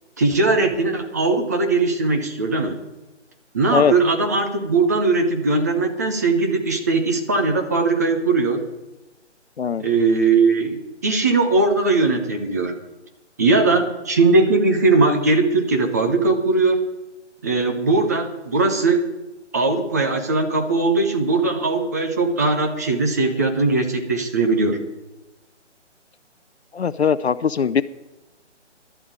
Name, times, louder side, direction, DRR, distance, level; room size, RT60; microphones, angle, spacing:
voice 1, 0.2-2.8 3.5-8.7 9.8-12.7 13.4-16.8 17.4-19.0 19.5-24.8, right 3 dB, 15° right, 4 dB, 0.6 m, -19 dB
voice 2, 26.7-27.8, left 7 dB, 60° left, 14 dB, 0.6 m, -20 dB
11.0 x 8.6 x 8.8 m, 1.0 s
figure-of-eight pair, 150°, 36 cm